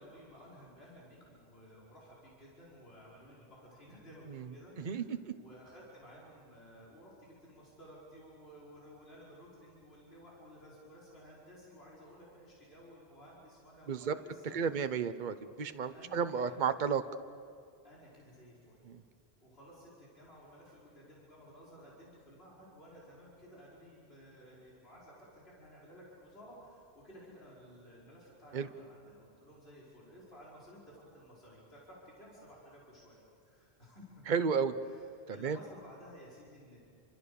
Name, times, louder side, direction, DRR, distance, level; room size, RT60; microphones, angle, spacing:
voice 1, 0.0-14.8 15.9-16.6 17.8-18.8 19.4-34.2 34.8-35.0 35.3-36.8, equal, 70° left, -6 dB, 5.7 m, -55 dB
voice 2, 4.8-5.3 13.9-14.1 14.4-17.0 18.8-19.0 28.5-28.7 34.3-34.7 35.3-35.6, right 6 dB, 50° right, 10 dB, 1.0 m, -33 dB
28.5 x 26.5 x 7.0 m, 2.3 s
omnidirectional pair, 1.1 m